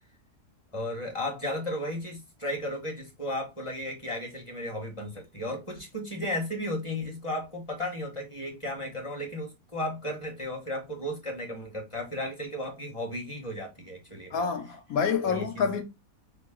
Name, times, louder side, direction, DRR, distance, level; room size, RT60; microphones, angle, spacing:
voice 1, 0.7-14.4 15.2-15.6, left 1 dB, 20° left, 1.4 m, -34 dB
voice 2, 14.3-15.8, left 6 dB, 70° left, 1.3 m, -27 dB
5.7 x 2.2 x 3.7 m
omnidirectional pair, 1.7 m